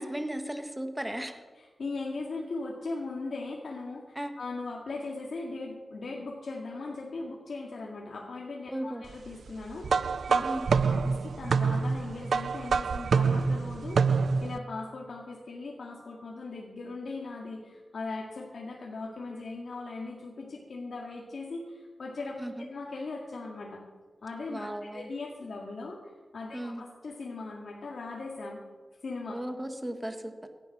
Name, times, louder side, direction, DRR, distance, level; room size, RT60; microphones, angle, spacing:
voice 1, 0.0-1.4 4.1-4.3 8.7-9.0 10.4-10.7 22.4-22.7 24.5-25.1 26.5-26.8 29.3-30.3, right 1 dB, 10° right, 6 dB, 1.5 m, -35 dB
voice 2, 1.5-4.0 4.4-23.8 24.2-28.6 29.0-29.4, left 3 dB, 65° left, -2 dB, 2.0 m, -39 dB
sound 1, 9.8-14.6, right 5 dB, 70° right, 0.4 m, -26 dB
17.0 x 11.0 x 6.0 m, 1.4 s
wide cardioid pair, 110°, 0 cm